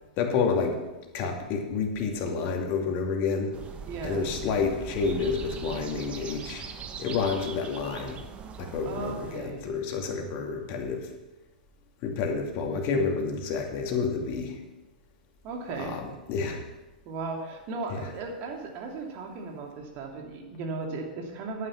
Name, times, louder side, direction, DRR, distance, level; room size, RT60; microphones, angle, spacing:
voice 1, 0.2-0.8 1.1-3.5 4.0-6.6 7.0-8.2 8.6-11.1 12.0-14.6 15.8-16.0 16.3-16.6 17.9-18.0, left 5 dB, 40° left, 2 dB, 2.5 m, -29 dB
sound 1, 3.5-9.4, right 6 dB, 25° right, 1.3 m, -41 dB
voice 2, 3.9-4.3 8.8-9.7 15.4-16.0 17.0-21.7, right 4 dB, 40° right, 1 dB, 2.8 m, -36 dB
11.0 x 9.5 x 6.0 m, 1.1 s
figure-of-eight pair, 105°, 5 cm